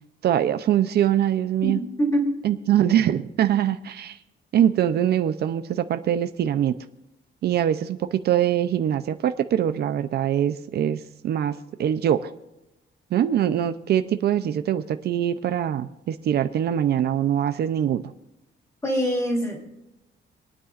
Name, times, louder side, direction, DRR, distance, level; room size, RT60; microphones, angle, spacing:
voice 1, 0.2-1.8 2.4-4.2 4.5-6.7 7.4-12.3 13.1-18.1, right 10 dB, 60° right, 10 dB, 0.6 m, -23 dB
voice 2, 1.6-2.3 18.8-19.6, equal, 15° left, 0 dB, 3.0 m, -24 dB
29.0 x 9.8 x 2.5 m, 0.93 s
cardioid pair, 165°, 19 cm